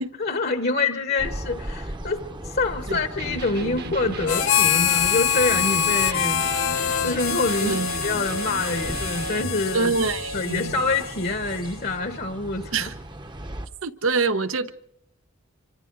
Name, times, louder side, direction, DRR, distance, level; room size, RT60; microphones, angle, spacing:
voice 1, 0.2-9.9 10.3-12.9, left 3 dB, 50° left, 1.1 m, -26 dB
sound 1, 1.2-13.7, right 1 dB, 20° right, 0.9 m, -38 dB
Electric guitar, 3.1-9.6, right 3 dB, 50° right, 1.2 m, -35 dB
Harmonica, 4.3-12.0, left 9 dB, 85° left, 0.9 m, -25 dB
voice 2, 7.6-8.1 9.7-10.8 12.7-12.9 13.8-14.7, right 4 dB, 80° right, 1.0 m, -25 dB
26.5 x 25.0 x 4.0 m
head